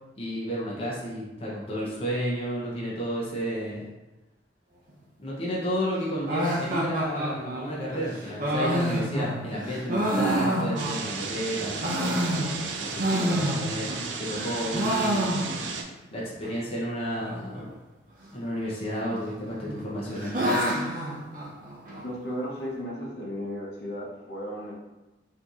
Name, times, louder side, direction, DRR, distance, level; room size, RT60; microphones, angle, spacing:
voice 1, 0.2-3.9 5.2-15.3 16.1-17.7 18.3-20.7, equal, 30° left, -5 dB, 0.7 m, -32 dB
sound 1, 6.3-11.3 11.6-14.0 14.3-15.9 16.1-16.2 16.4-16.5 17.2-17.6 18.6-19.2 19.6-22.0, right 1 dB, 45° right, 0.6 m, -28 dB
sound 2, 10.8-15.8, right 4 dB, 90° right, 0.4 m, -34 dB
voice 2, 22.0-24.7, equal, 70° left, -5 dB, 0.8 m, -35 dB
4.3 x 2.7 x 2.4 m, 1.0 s
head